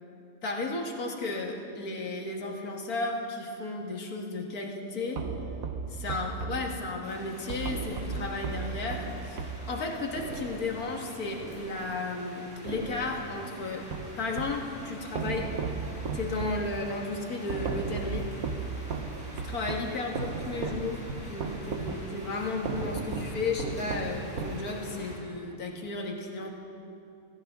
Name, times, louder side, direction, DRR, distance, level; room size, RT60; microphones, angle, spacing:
voice 1, 0.4-5.3 5.9-13.9 14.2-15.5 16.1-18.3 19.4-26.5, left 3 dB, 80° left, 1 dB, 2.1 m, -34 dB
sound 1, 5.2-12.3 12.7-14.7 15.1-25.1, right 4 dB, 70° right, 1.4 m, -36 dB
sound 2, 7.0-25.2, equal, 5° right, 4.5 m, -47 dB
25.5 x 14.0 x 3.7 m, 2.7 s
omnidirectional pair, 1.6 m